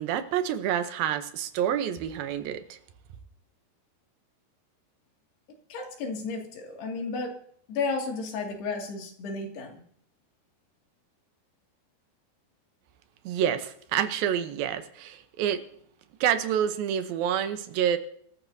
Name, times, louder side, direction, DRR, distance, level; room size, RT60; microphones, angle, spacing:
voice 1, 0.0-2.8 13.3-15.6 16.2-18.0, right 9 dB, 70° right, 9 dB, 2.5 m, -28 dB
voice 2, 5.7-7.3 7.7-9.8, left 4 dB, 75° left, 1 dB, 4.5 m, -33 dB
24.5 x 14.0 x 2.8 m, 0.63 s
omnidirectional pair, 4.8 m